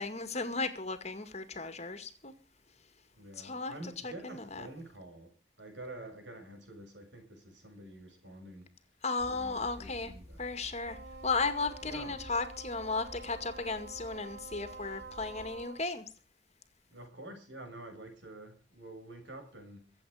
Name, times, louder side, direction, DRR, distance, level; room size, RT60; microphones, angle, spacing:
voice 1, 0.0-2.3 3.4-3.8 4.0-4.7 9.0-10.1 10.4-16.1, left 3 dB, 35° left, 2.1 m, -35 dB
voice 2, 3.1-8.7 9.3-10.4 11.8-12.2 16.9-19.9, right 1 dB, 70° right, 6.8 m, -48 dB
sound 1, 9.2-15.6, equal, 10° right, 5.3 m, -52 dB
Wind instrument woodwind instrument, 10.8-15.9, right 3 dB, 55° right, 1.2 m, -48 dB
24.0 x 8.3 x 5.0 m
head